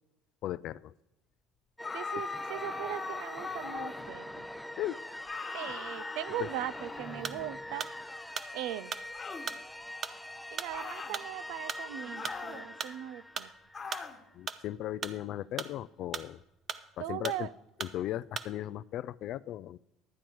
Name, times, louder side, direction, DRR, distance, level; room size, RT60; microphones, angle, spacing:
voice 1, 0.4-0.9 2.1-2.2 4.8-5.0 6.4-6.5 14.3-16.4 17.0-17.5 17.8-19.8, left 13 dB, 60° left, 19 dB, 0.3 m, -37 dB
sound 1, 1.8-4.1 5.2-7.5 9.1-9.5 10.7-11.2 12.2-12.7 13.7-14.2, left 4 dB, 30° left, 1.3 m, -40 dB
sound 2, 1.8-14.3, left 1 dB, 5° left, 0.6 m, -44 dB
voice 2, 1.9-4.5 5.5-7.9 8.5-8.9 10.5-13.5 17.0-17.5, right 13 dB, 75° right, 17 dB, 0.4 m, -39 dB
sound 3, 7.2-7.5 7.8-13.0 13.4-14.6 14.9-16.4 16.7-17.4 17.8-18.0 18.4-18.6, right 6 dB, 45° right, 0.7 m, -39 dB
12.0 x 9.0 x 4.6 m, 0.91 s
supercardioid pair, 85°, 0 cm